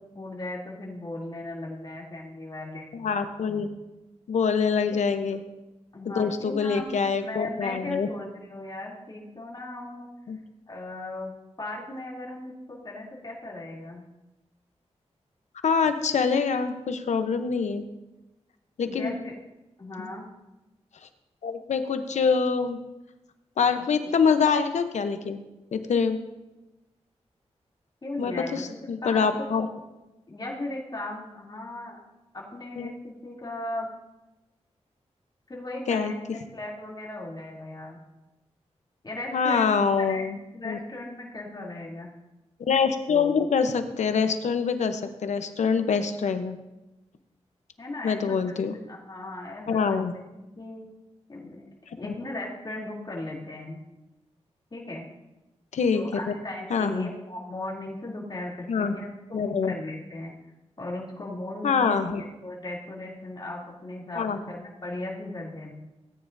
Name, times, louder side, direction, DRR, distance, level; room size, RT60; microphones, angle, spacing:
voice 1, 0.1-2.9 5.9-10.1 10.7-14.0 18.8-19.3 19.8-20.3 28.0-29.3 30.3-32.0 32.3-33.9 35.5-36.2 36.5-38.0 39.0-39.7 40.1-40.3 40.5-42.1 47.8-48.6 48.9-50.9 51.3-51.6 52.0-53.8 54.7-55.1 55.9-60.3 60.8-62.1 62.4-65.7, left 2 dB, 35° left, -4 dB, 3.0 m, -37 dB
voice 2, 2.9-3.7 4.3-5.4 6.1-8.1 10.3-10.4 15.6-17.8 18.8-19.1 20.0-20.1 21.4-22.8 23.6-25.4 25.7-26.2 28.2-29.7 32.8-32.9 35.9-36.1 39.3-40.4 40.6-40.8 42.7-46.6 48.0-48.8 49.7-50.1 55.7-56.0 56.7-57.1 58.7-58.9 59.3-59.7 61.6-62.2 64.1-64.4, left 5 dB, 90° left, 8 dB, 0.8 m, -25 dB
17.5 x 9.4 x 2.7 m, 1.0 s
cardioid pair, 75°, 12 cm